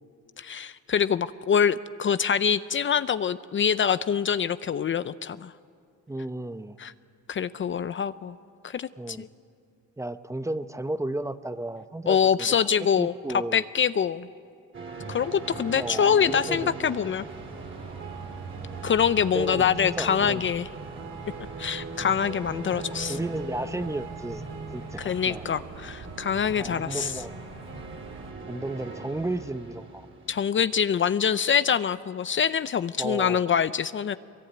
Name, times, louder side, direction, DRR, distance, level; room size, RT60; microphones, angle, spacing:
voice 1, 0.4-5.5 6.8-6.9 7.3-8.4 8.6-9.3 12.1-13.1 13.5-14.3 15.1-17.2 18.8-20.7 21.6-23.2 25.0-27.1 30.3-34.2, left 7 dB, 40° left, 14 dB, 0.6 m, -25 dB
voice 2, 6.1-6.8 9.0-9.2 10.0-12.6 13.0-13.7 15.7-16.7 17.1-17.2 19.3-20.5 23.1-24.4 24.7-25.4 26.6-27.3 28.5-30.1 33.0-33.4, right 1 dB, 10° right, 12 dB, 0.8 m, -33 dB
sound 1, 14.7-31.6, right 3 dB, 40° right, 3.2 m, -40 dB
Mechanisms, 17.3-28.3, right 4 dB, 80° right, 3.6 m, -46 dB
23.0 x 22.5 x 9.5 m, 2.3 s
cardioid pair, 90°, 30 cm